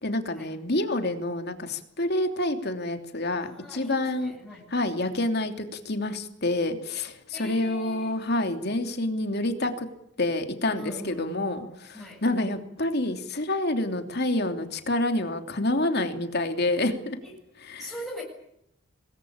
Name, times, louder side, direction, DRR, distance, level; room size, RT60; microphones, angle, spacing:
voice 1, 0.0-4.3 4.7-9.9 10.2-17.2 17.7-17.9, left 2 dB, 50° left, 6 dB, 3.0 m, -28 dB
voice 2, 3.4-4.7 7.3-8.2 10.7-12.3 17.2-17.3 17.8-18.2, equal, ahead, -2 dB, 7.8 m, -41 dB
25.5 x 20.5 x 8.9 m, 0.78 s
head